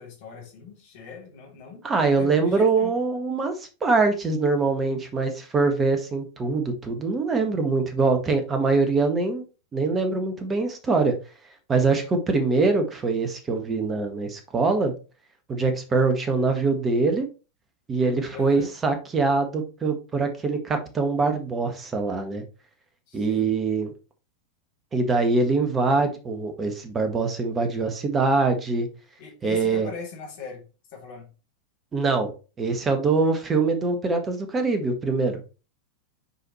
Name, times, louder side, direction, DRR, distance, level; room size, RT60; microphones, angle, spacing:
voice 1, 0.0-2.9 18.3-18.7 23.1-23.5 29.2-30.6 30.9-31.3, left 6 dB, 50° left, -1 dB, 3.0 m, -40 dB
voice 2, 1.8-9.4 9.7-11.2 11.7-14.9 15.5-17.3 17.9-22.4 23.1-23.9 24.9-28.9 29.4-29.9 31.9-32.3 32.6-35.4, right 3 dB, 20° right, 6 dB, 1.6 m, -23 dB
6.9 x 5.0 x 3.1 m, 0.32 s
figure-of-eight pair, 90°, 0 cm